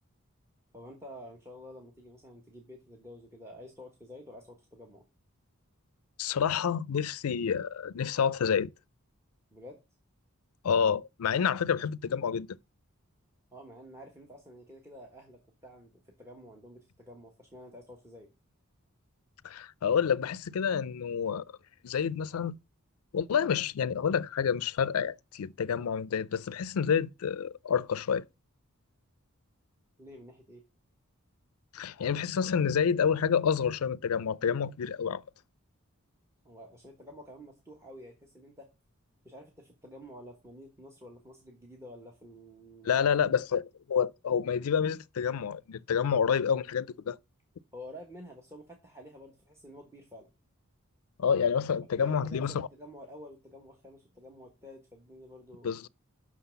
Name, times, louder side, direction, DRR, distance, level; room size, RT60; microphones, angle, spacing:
voice 1, 0.7-5.0 9.5-9.8 13.5-18.3 30.0-30.6 36.4-38.7 39.2-43.4 47.7-50.3 52.0-55.8, equal, 10° right, 1.3 m, -49 dB
voice 2, 6.2-8.7 10.6-12.6 19.4-21.4 21.8-22.6 23.1-28.2 31.7-35.2 42.8-43.6 43.9-47.2 51.2-52.7 55.6-55.9, left 7 dB, 80° left, 0.4 m, -28 dB
6.2 x 5.7 x 6.9 m
head